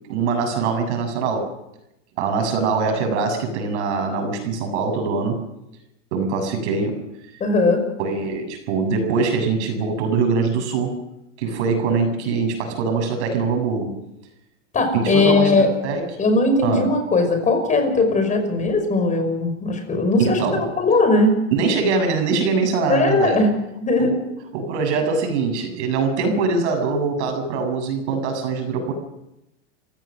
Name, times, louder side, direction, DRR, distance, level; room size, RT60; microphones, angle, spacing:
voice 1, 0.0-1.6 2.2-5.5 6.1-7.0 8.0-11.0 11.4-14.0 14.9-16.2 16.6-16.9 20.2-20.7 21.5-23.4 24.0-24.2 24.5-28.9, right 4 dB, 70° right, 5 dB, 7.4 m, -23 dB
voice 2, 7.4-7.8 14.7-15.7 16.2-21.4 22.9-23.5 23.8-24.1, left 3 dB, 20° left, 5 dB, 5.7 m, -19 dB
28.5 x 16.5 x 6.5 m, 0.88 s
supercardioid pair, 145°, 36 cm